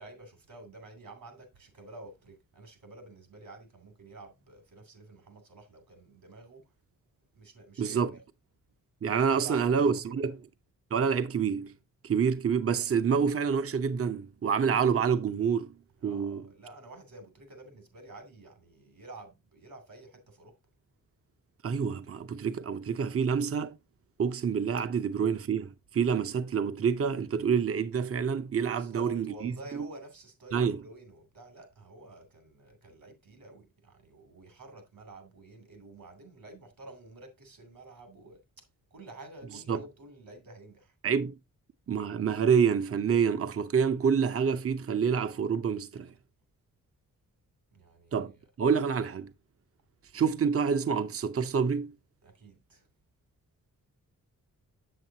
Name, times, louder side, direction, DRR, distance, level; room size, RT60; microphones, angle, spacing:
voice 1, 0.0-6.7 7.3-8.2 9.3-10.2 16.0-20.6 28.6-38.6 38.9-40.9 47.7-48.3 50.1-50.2 52.2-52.9, right 2 dB, 75° right, 2.8 m, -50 dB
voice 2, 7.8-8.1 9.0-10.4 10.9-11.7 12.0-15.7 16.0-16.4 21.6-23.8 24.2-29.9 30.5-30.8 39.7-39.8 41.0-41.4 41.9-46.1 48.1-48.3 48.6-49.3 50.1-52.0, right 6 dB, 40° right, 0.6 m, -27 dB
7.7 x 7.0 x 2.7 m
cardioid pair, 60°, 34 cm